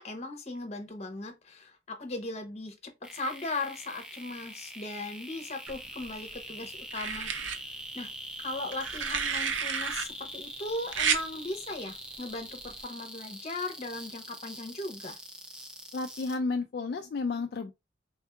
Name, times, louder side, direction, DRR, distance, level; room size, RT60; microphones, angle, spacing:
voice 1, 0.0-7.3 7.9-8.1 8.4-15.2, left 2 dB, 35° left, 0.9 m, -38 dB
sound 1, 3.0-16.4, equal, 5° right, 0.5 m, -43 dB
sound 2, 5.7-6.3 6.9-7.6 8.7-10.1 10.9-11.2 12.6-12.8, right 7 dB, 90° right, 0.6 m, -31 dB
voice 2, 15.9-17.7, left 3 dB, 55° left, 0.3 m, -32 dB
3.6 x 2.6 x 3.4 m
head